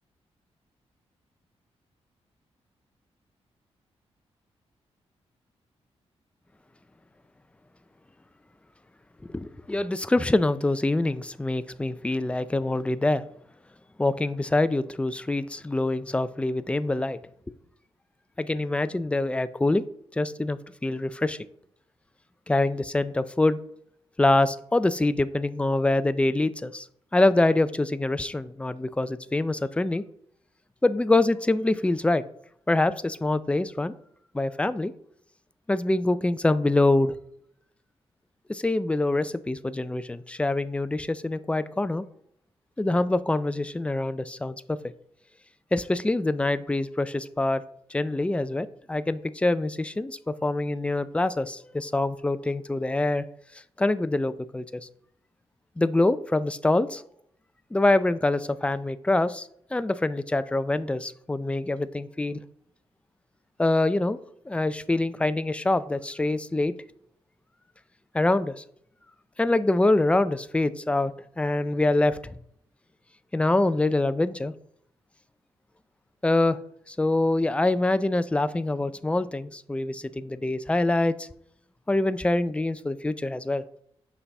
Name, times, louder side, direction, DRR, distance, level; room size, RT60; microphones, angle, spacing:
voice 1, 9.3-13.2 14.0-17.2 18.4-19.8 20.1-21.4 22.5-23.6 24.2-26.9 27.1-30.0 30.8-32.2 32.7-33.9 34.3-34.9 35.7-37.2 38.5-42.1 42.8-44.8 45.7-47.6 47.9-53.3 53.8-54.9 55.8-57.0 57.7-62.4 63.6-64.2 64.5-66.8 68.1-68.6 69.4-72.3 73.3-74.5 76.2-76.6 76.9-81.3 81.9-83.7, left 2 dB, 10° left, 13 dB, 0.4 m, -25 dB
8.3 x 5.5 x 3.4 m, 0.69 s
cardioid pair, 85°, 11 cm